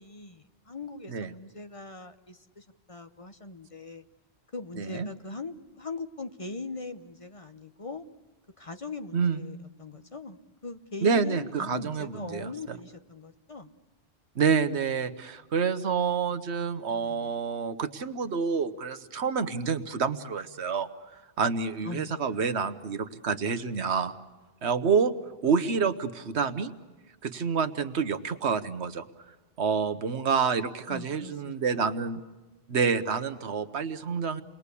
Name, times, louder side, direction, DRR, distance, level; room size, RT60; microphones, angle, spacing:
voice 1, 0.0-4.0 4.5-8.1 8.6-13.7 16.6-17.3 21.8-22.3 25.4-25.6 30.9-31.8, left 3 dB, 35° left, 8 dB, 1.0 m, -41 dB
voice 2, 4.8-5.1 9.1-9.4 11.0-12.5 14.4-20.9 21.4-24.1 24.6-25.1 25.4-26.7 27.2-29.0 29.6-32.2 32.7-34.4, right 5 dB, 85° right, 11 dB, 1.4 m, -28 dB
29.5 x 21.0 x 8.4 m, 1.2 s
omnidirectional pair, 1.1 m